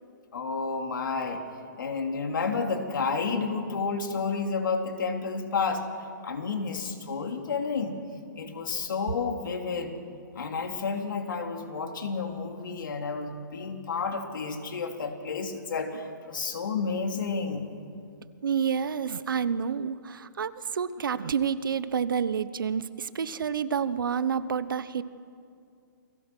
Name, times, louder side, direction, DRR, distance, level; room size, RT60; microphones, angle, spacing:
voice 1, 0.3-1.4 1.8-5.8 6.2-8.0 8.4-10.0 10.3-17.7, left 4 dB, 70° left, 4 dB, 3.2 m, -31 dB
voice 2, 18.4-25.0, right 7 dB, 80° right, 15 dB, 1.0 m, -29 dB
29.0 x 20.5 x 6.2 m, 2.4 s
hypercardioid pair, 165°, 11 cm